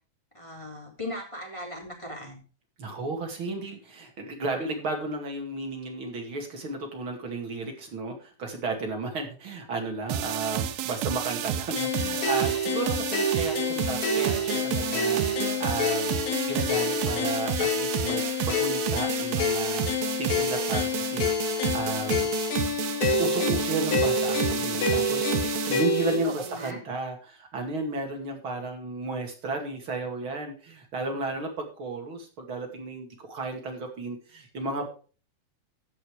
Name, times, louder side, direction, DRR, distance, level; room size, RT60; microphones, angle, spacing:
voice 1, 0.3-2.4 26.2-26.8, equal, 10° left, -1 dB, 3.0 m, -37 dB
voice 2, 2.8-19.9 20.2-22.3 23.2-34.9, right 2 dB, 40° right, 2 dB, 2.8 m, -33 dB
sound 1, 10.1-26.7, right 11 dB, 85° right, 2.6 m, -31 dB
sound 2, 11.8-26.2, left 3 dB, 80° left, 3.6 m, -28 dB
15.5 x 6.0 x 4.9 m, 0.37 s
omnidirectional pair, 4.0 m